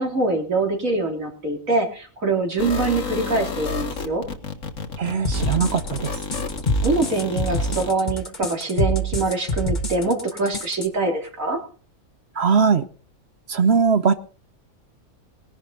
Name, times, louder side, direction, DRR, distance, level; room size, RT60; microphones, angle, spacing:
voice 1, 0.0-4.2 5.0-5.2 6.8-11.6, right 3 dB, 75° right, 3.8 m, -24 dB
sound 1, 2.6-7.9, left 4 dB, 70° left, 1.9 m, -31 dB
voice 2, 5.0-6.1 12.4-12.8 13.5-14.1, right 5 dB, 55° right, 1.1 m, -20 dB
sound 2, 5.2-10.9, equal, 35° left, 1.9 m, -25 dB
19.5 x 11.0 x 4.0 m
omnidirectional pair, 1.4 m